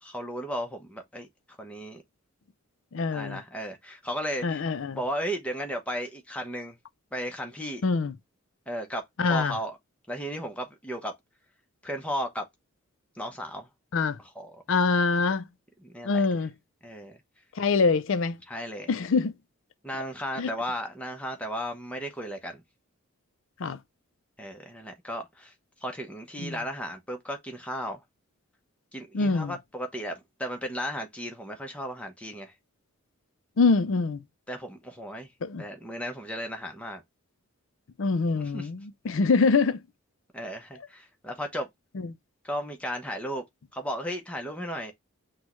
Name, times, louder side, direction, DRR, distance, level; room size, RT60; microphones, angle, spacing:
voice 1, 0.0-2.0 3.1-4.6 4.9-6.8 7.1-7.8 8.7-9.8 10.1-11.1 11.8-12.5 13.2-13.7 14.2-14.6 15.8-16.3 16.8-17.2 18.5-19.0 19.8-22.6 24.4-25.5 25.8-28.0 28.9-32.5 34.5-35.3 35.6-37.0 38.4-38.7 40.3-41.7 42.4-43.4 43.7-44.9, equal, 5° left, 0.8 m, -35 dB
voice 2, 2.9-3.4 4.4-5.0 7.8-8.1 9.2-9.6 13.9-14.2 14.7-15.5 16.0-16.5 17.6-18.4 18.9-19.3 20.4-20.5 23.6-23.8 26.4-26.6 29.1-29.5 33.6-34.2 35.4-35.6 38.0-39.8 42.0-42.1, left 4 dB, 60° left, 0.4 m, -24 dB
6.1 x 2.3 x 3.0 m
head